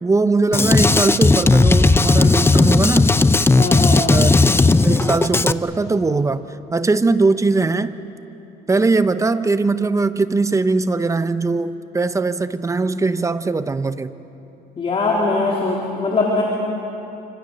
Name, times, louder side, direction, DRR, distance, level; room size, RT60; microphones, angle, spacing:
voice 1, 0.0-3.1 4.1-4.3 4.8-7.9 8.7-14.1, right 3 dB, 20° right, 0.8 m, -20 dB
Drum kit, 0.5-5.5, left 3 dB, 15° left, 0.6 m, -15 dB
voice 2, 3.6-4.1 14.8-16.4, left 3 dB, 35° left, 3.7 m, -21 dB
28.0 x 26.0 x 6.8 m
cardioid pair, 110°, 17 cm